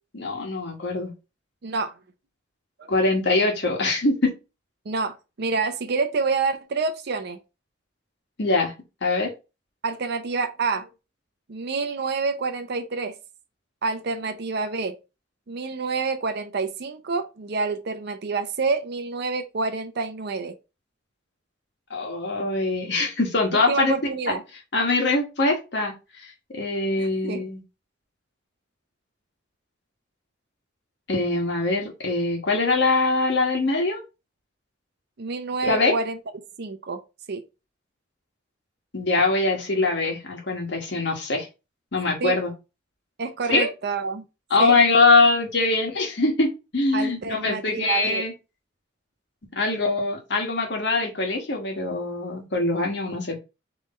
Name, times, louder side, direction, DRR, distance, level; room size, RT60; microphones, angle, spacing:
voice 1, 0.1-1.1 2.9-4.3 8.4-8.7 9.0-9.3 21.9-23.9 24.3-24.4 24.7-25.9 26.5-27.6 31.1-34.0 35.6-35.9 38.9-41.5 41.9-42.5 43.5-43.7 44.5-48.3 49.5-53.4, left 3 dB, 65° left, 1.4 m, -23 dB
voice 2, 1.6-1.9 2.8-2.9 4.9-7.4 9.8-10.9 11.5-13.2 13.8-14.9 15.5-20.5 23.5-24.4 27.0-27.4 35.2-36.2 36.6-37.0 37.3-37.4 42.2-42.4 43.2-44.2 44.6-44.8 46.9-48.2, right 4 dB, 60° right, 0.6 m, -28 dB
3.9 x 3.1 x 4.1 m
head